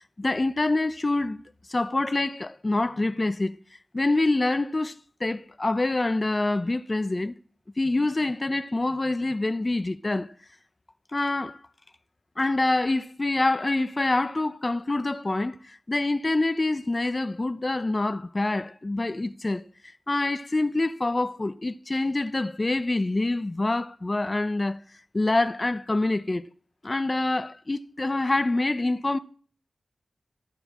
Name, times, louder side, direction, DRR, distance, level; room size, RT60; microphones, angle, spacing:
voice 1, 0.0-1.4 1.7-3.5 3.9-4.9 5.2-7.3 7.8-10.3 11.1-11.6 12.4-19.6 20.1-24.8 25.1-26.4 26.8-29.2, left 2 dB, 30° left, 0.9 m, -26 dB
14.5 x 13.0 x 7.5 m
wide cardioid pair, 85°, 0 cm